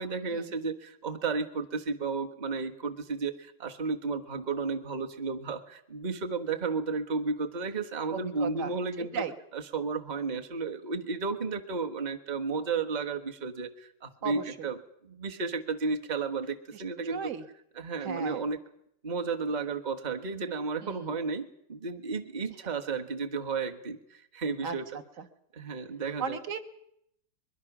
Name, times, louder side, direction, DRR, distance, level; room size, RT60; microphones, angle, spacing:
voice 1, 0.0-9.2 9.5-14.8 15.0-17.3 17.7-18.6 19.0-24.8 25.5-26.4, right 4 dB, 25° right, 5 dB, 1.3 m, -33 dB
voice 2, 8.1-8.7 9.1-9.3 14.2-14.7 16.7-17.4 18.0-18.4 20.8-21.1 24.6-24.7 26.2-26.6, right 6 dB, 45° right, 8 dB, 1.7 m, -36 dB
22.5 x 22.5 x 6.1 m, 0.72 s
omnidirectional pair, 2.0 m